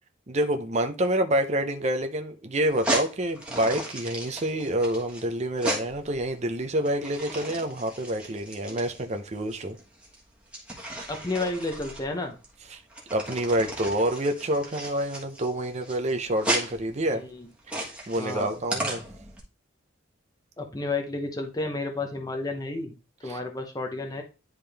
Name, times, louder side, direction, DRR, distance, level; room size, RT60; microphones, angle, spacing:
voice 1, 0.3-9.8 12.7-12.8 13.1-17.2 17.7-19.0 23.2-23.4, right 1 dB, 35° right, 0.6 m, -27 dB
sound 1, 2.6-19.4, right 1 dB, 5° right, 1.4 m, -35 dB
voice 2, 11.1-12.4 17.1-17.5 18.2-18.5 20.6-22.9 23.2-24.2, left 2 dB, 20° left, 0.7 m, -31 dB
10.5 x 3.7 x 3.4 m
head